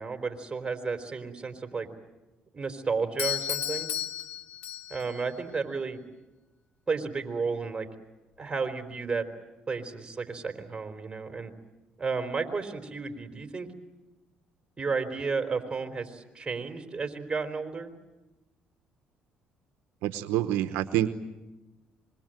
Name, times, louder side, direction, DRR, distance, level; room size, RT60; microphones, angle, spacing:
voice 1, 0.0-1.9 2.5-3.9 4.9-6.0 6.9-7.9 8.4-9.3 9.7-11.5 12.0-13.7 14.8-17.9, right 4 dB, 25° right, 6 dB, 4.1 m, -32 dB
Doorbell, 3.2-5.2, left 10 dB, 75° left, 2.2 m, -33 dB
voice 2, 20.0-21.1, right 13 dB, 80° right, 9 dB, 1.0 m, -27 dB
25.5 x 23.0 x 9.1 m, 1.1 s
supercardioid pair, 70°, 4 cm